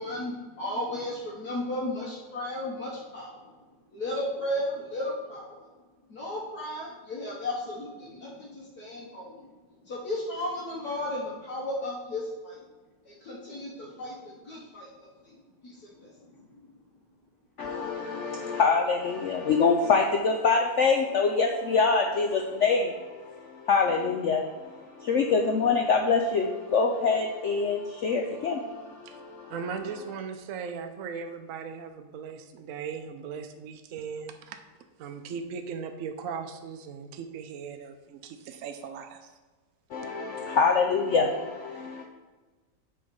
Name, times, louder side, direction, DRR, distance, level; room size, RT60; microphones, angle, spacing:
voice 1, 0.0-3.4 3.9-5.6 6.1-9.5 9.9-12.6 13.1-14.2 14.4-14.9 15.2-15.4 15.6-16.1, left 1 dB, 60° left, -4 dB, 1.5 m, -34 dB
voice 2, 17.6-29.5 39.9-42.0, left 4 dB, 80° left, 3 dB, 0.6 m, -25 dB
voice 3, 29.5-34.6 35.0-39.3, right 6 dB, 65° right, 6 dB, 0.8 m, -38 dB
7.6 x 3.9 x 5.2 m, 1.3 s
omnidirectional pair, 1.9 m